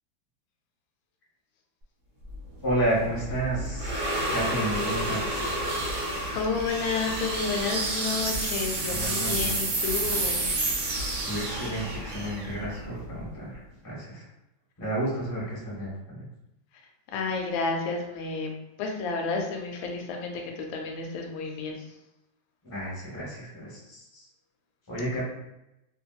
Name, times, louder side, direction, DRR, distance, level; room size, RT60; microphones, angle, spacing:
sound 1, 2.3-13.5, right 2 dB, 65° right, 0.8 m, -30 dB
voice 1, 2.6-5.5 8.9-9.6 11.2-14.2 14.8-16.2 22.6-24.3 24.9-25.2, right 1 dB, 25° left, -6 dB, 0.5 m, -31 dB
voice 2, 6.3-10.7 17.1-18.5 18.8-21.7, left 4 dB, 85° left, 2 dB, 1.3 m, -31 dB
2.9 x 2.7 x 2.3 m, 0.89 s
omnidirectional pair, 2.1 m